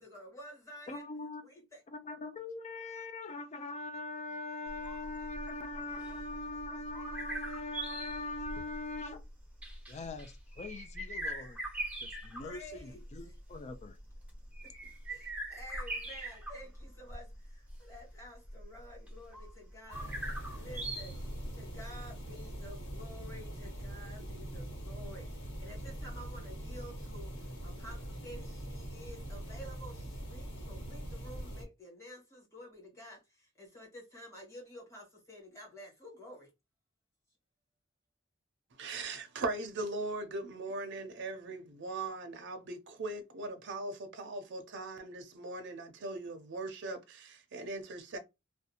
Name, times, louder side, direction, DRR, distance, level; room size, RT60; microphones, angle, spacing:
voice 1, 0.1-1.1 12.4-13.0 15.5-16.7 17.0-17.2 17.9-19.3 19.7-20.1 20.6-21.1 21.6-25.3 25.6-27.3 27.6-28.0 28.2-29.9 30.3-33.2 33.7-36.4, equal, 15° left, 1.4 m, -50 dB
voice 2, 0.9-1.4 1.9-9.2 9.9-11.6 12.0-14.0, left 2 dB, 35° left, 0.4 m, -42 dB
sound 1, 4.7-21.9, right 1 dB, 5° right, 0.6 m, -42 dB
sound 2, 19.9-31.6, right 1 dB, 60° left, 1.6 m, -43 dB
voice 3, 38.8-48.2, right 2 dB, 60° right, 0.5 m, -39 dB
2.5 x 2.2 x 2.7 m
head